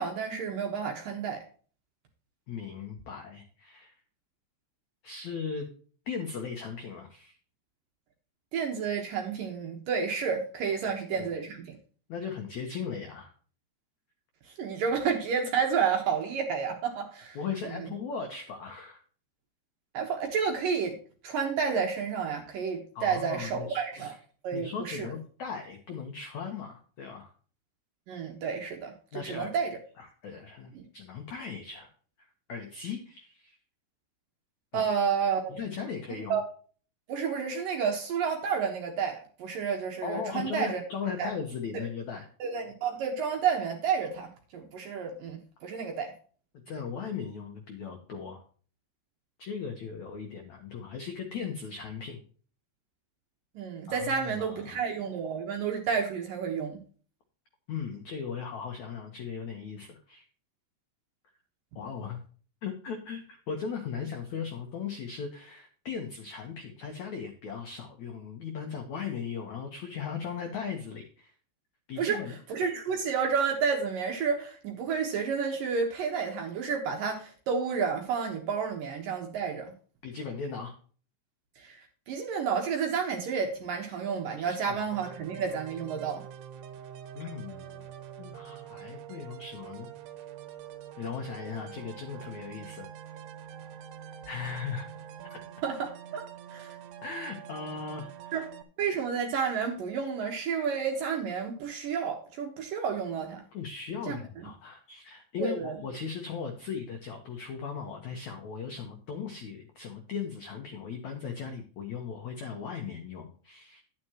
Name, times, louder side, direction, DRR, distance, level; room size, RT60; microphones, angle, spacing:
voice 1, 0.0-1.4 8.5-11.8 14.5-17.4 17.8-17.9 19.9-21.0 21.2-24.1 24.4-25.1 28.1-29.8 30.7-30.8 34.7-35.6 36.3-36.4 37.1-40.8 41.2-41.3 41.7-41.8 42.4-46.1 53.6-56.8 72.0-72.2 72.5-79.7 81.6-86.2 95.6-96.2 96.5-96.8 98.3-98.4 98.8-103.4 104.1-104.2 105.4-105.7, right 6 dB, 65° right, 2 dB, 2.4 m, -30 dB
voice 2, 2.5-3.9 5.0-5.7 6.0-7.4 10.8-11.3 12.1-13.3 17.3-19.0 22.9-24.2 24.5-27.3 29.1-29.5 30.0-31.9 32.2-33.6 34.7-34.8 35.5-36.4 40.0-42.3 46.7-48.4 49.4-52.2 53.9-54.8 57.7-60.2 61.7-62.2 62.6-71.3 71.9-72.4 80.0-80.8 84.4-84.8 87.1-87.9 88.2-89.9 91.0-92.8 94.2-94.9 95.2-95.4 97.0-98.5 103.5-113.8, left 6 dB, 80° left, 4 dB, 1.6 m, -38 dB
sound 1, 84.9-98.6, right 9 dB, 90° right, 3.4 m, -45 dB
11.0 x 9.6 x 3.0 m, 0.41 s
omnidirectional pair, 5.3 m